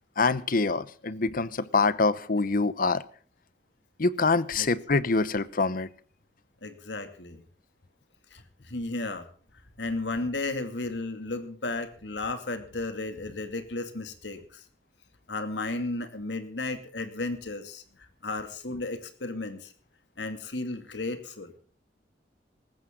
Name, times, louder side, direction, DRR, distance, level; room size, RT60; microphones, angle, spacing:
voice 1, 0.2-3.0 4.0-5.9, left 3 dB, 55° left, 0.9 m, -25 dB
voice 2, 6.6-7.4 8.3-9.3 9.8-14.6 15.3-19.7 20.2-21.5, left 2 dB, 90° left, 2.4 m, -34 dB
19.0 x 15.0 x 3.8 m
head